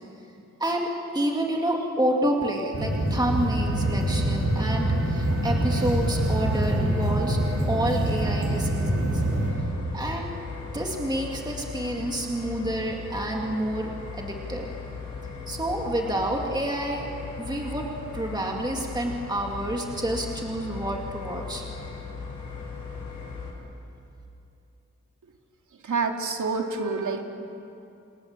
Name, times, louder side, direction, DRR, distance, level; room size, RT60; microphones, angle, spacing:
voice 1, 0.6-9.2 9.9-10.3 10.7-14.7 15.5-17.1 17.4-17.9 18.1-21.6, right 1 dB, 15° right, 0 dB, 2.3 m, -29 dB
sound 1, 2.7-9.5, right 1 dB, 60° right, 7.8 m, -25 dB
sound 2, 3.6-23.5, left 5 dB, 70° left, 6.6 m, -38 dB
voice 2, 25.8-27.2, right 4 dB, 90° right, 3 dB, 2.7 m, -27 dB
28.5 x 28.0 x 7.4 m, 2.7 s
wide cardioid pair, 180°, 30 cm